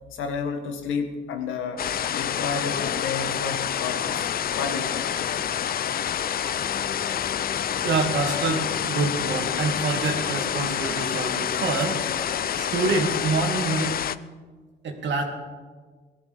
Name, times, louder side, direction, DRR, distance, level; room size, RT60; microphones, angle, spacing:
voice 1, 0.1-5.1, left 5 dB, 80° left, 6 dB, 1.8 m, -31 dB
sound 1, 1.8-14.2, left 9 dB, 50° left, 0.5 m, -28 dB
sound 2, 6.5-12.3, left 5 dB, 20° left, 1.4 m, -43 dB
voice 2, 7.8-12.1 12.6-14.0 14.8-15.2, right 3 dB, 65° right, 3 dB, 2.4 m, -26 dB
17.0 x 13.0 x 5.4 m, 1.5 s
cardioid pair, 90°, 20 cm